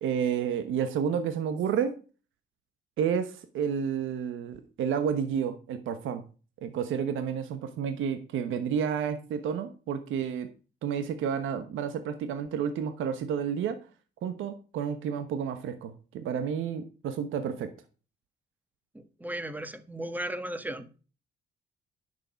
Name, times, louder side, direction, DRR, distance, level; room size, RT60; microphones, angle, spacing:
voice 1, 0.0-1.9 3.0-6.2 6.6-10.5 10.8-13.8 14.2-17.7, right 7 dB, 80° right, 1.1 m, -30 dB
voice 2, 18.9-21.0, right 1 dB, 10° right, 1.5 m, -36 dB
10.0 x 6.8 x 5.1 m
cardioid pair, 90°, 20 cm